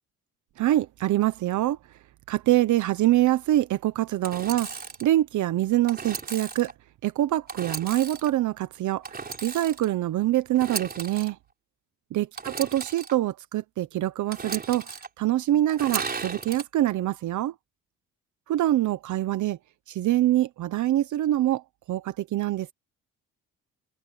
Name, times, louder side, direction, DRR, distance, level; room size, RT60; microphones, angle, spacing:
voice 1, 0.6-1.8 2.3-6.7 7.0-11.4 12.1-17.5 18.5-19.6 19.9-21.6 21.9-22.7, right 14 dB, 75° right, 1.0 m, -25 dB
Engine / Sawing, 4.2-5.1 5.9-6.7 7.5-8.3 9.0-9.9 10.5-11.3 12.4-13.1 14.3-15.1 15.7-16.6, right 4 dB, 30° right, 3.8 m, -35 dB
cardioid pair, 90°, 30 cm